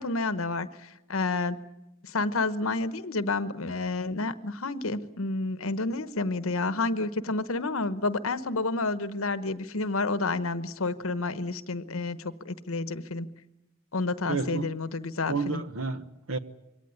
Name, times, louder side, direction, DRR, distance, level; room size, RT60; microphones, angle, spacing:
voice 1, 0.0-1.6 2.0-13.3 13.9-15.6, left 3 dB, 80° left, 14 dB, 1.1 m, -30 dB
voice 2, 14.3-14.7 15.3-16.4, right 4 dB, 80° right, 12 dB, 1.2 m, -31 dB
23.0 x 17.5 x 9.6 m, 0.94 s
head